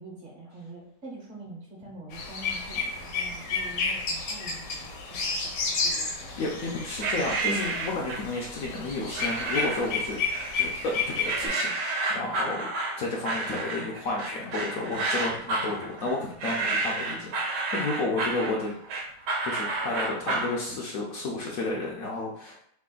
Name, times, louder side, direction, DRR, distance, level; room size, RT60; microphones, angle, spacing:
voice 1, 0.0-6.4, right 2 dB, 50° right, -3 dB, 1.3 m, -45 dB
sound 1, 2.1-11.5, left 4 dB, 85° left, 1.4 m, -32 dB
voice 2, 6.4-10.2 10.5-12.7 13.0-18.7 19.4-22.6, left 2 dB, 65° left, -2 dB, 0.9 m, -32 dB
sound 2, 7.0-8.3 9.1-9.9 10.3-10.9 11.3-20.5, right 2 dB, 75° right, 1.3 m, -30 dB
3.3 x 2.5 x 3.7 m, 0.71 s
omnidirectional pair, 1.8 m